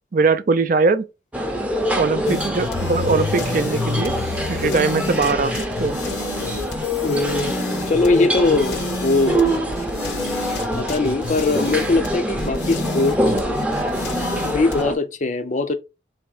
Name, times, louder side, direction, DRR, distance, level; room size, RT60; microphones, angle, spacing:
voice 1, 0.1-1.1 2.0-4.1 4.5-5.5 5.8-6.0, right 4 dB, 50° right, 0.4 m, -20 dB
sound 1, 1.3-15.0, right 1 dB, 5° right, 0.6 m, -25 dB
sound 2, 2.3-14.8, left 4 dB, 70° left, 0.8 m, -29 dB
voice 2, 7.0-7.5 7.9-9.4 10.8-13.3 14.4-15.7, left 3 dB, 40° left, 0.5 m, -21 dB
3.6 x 3.1 x 4.7 m
head